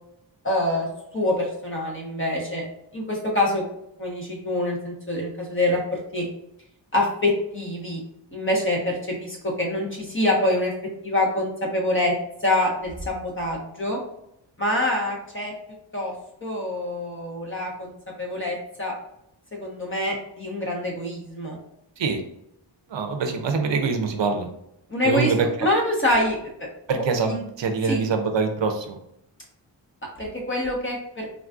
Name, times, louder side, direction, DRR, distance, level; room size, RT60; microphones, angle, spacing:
voice 1, 0.4-0.9 1.1-2.6 2.9-3.6 4.0-6.3 6.9-8.0 8.3-10.7 11.0-12.1 12.4-14.0 14.6-15.5 15.9-16.1 16.4-17.9 18.2-19.0 19.5-21.6 24.9-25.3 25.6-26.7 27.3-27.4 27.9-28.0 30.2-31.3, left 1 dB, 25° left, -2 dB, 1.0 m, -25 dB
voice 2, 22.9-24.5 25.0-25.7 26.9-29.0, right 4 dB, 70° right, 5 dB, 0.6 m, -24 dB
3.8 x 2.4 x 2.4 m, 0.77 s
wide cardioid pair, 85°, 45 cm